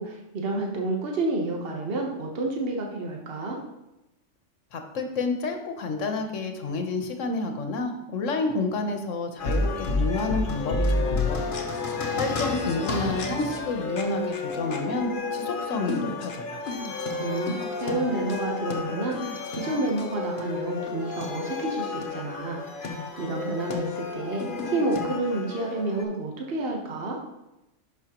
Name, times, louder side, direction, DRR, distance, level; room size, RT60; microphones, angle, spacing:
voice 1, 0.0-3.6 17.2-27.2, right 2 dB, 50° right, 0 dB, 1.3 m, -30 dB
voice 2, 4.7-11.4 12.1-16.6, left 3 dB, 80° left, 5 dB, 1.3 m, -29 dB
sound 1, 9.4-26.0, left 3 dB, 45° left, 1.0 m, -30 dB
11.0 x 5.8 x 3.0 m, 0.93 s
omnidirectional pair, 1.3 m